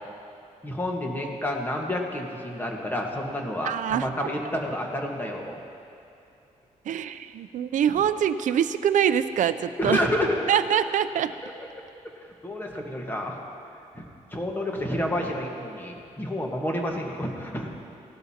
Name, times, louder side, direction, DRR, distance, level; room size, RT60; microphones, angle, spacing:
voice 1, 0.6-5.6 9.8-10.4 11.4-11.5 12.4-13.4 13.9-14.0 14.3-17.7, left 1 dB, 15° left, 0 dB, 1.4 m, -29 dB
voice 2, 3.6-4.3 6.9-10.0 10.5-11.3, right 9 dB, 75° right, 12 dB, 0.4 m, -24 dB
18.5 x 12.0 x 2.9 m, 2.6 s
wide cardioid pair, 135°, 13 cm